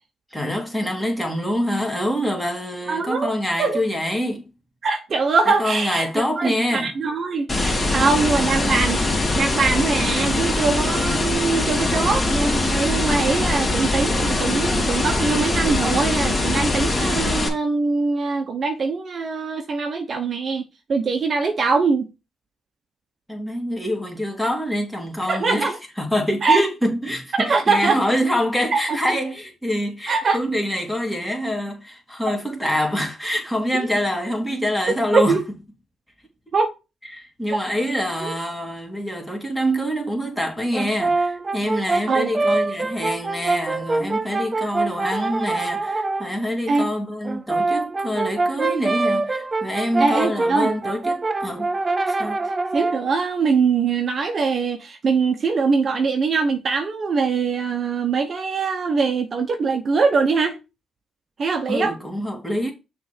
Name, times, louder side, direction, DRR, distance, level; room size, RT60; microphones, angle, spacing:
voice 1, 0.3-4.5 5.5-6.9 8.4-8.8 23.3-35.4 37.1-51.7 52.0-52.4 61.7-62.7, equal, 5° left, 2.4 m, -25 dB
voice 2, 2.9-3.3 3.6-3.8 4.8-9.0 9.3-20.6 20.9-22.1 25.3-25.8 26.4-26.6 27.3-28.0 28.7-29.2 30.1-30.4 33.7-33.9 35.1-35.4 36.5-36.7 38.2-38.4 42.1-42.3 44.0-44.1 46.7-46.9 50.0-50.7 52.4-60.6 61.4-62.0, right 4 dB, 45° right, 0.9 m, -22 dB
sound 1, 7.5-17.5, left 2 dB, 25° left, 2.5 m, -22 dB
Brass instrument, 40.7-46.3 47.2-53.1, right 3 dB, 25° right, 0.6 m, -24 dB
6.2 x 3.4 x 5.8 m
cardioid pair, 90°, 0 cm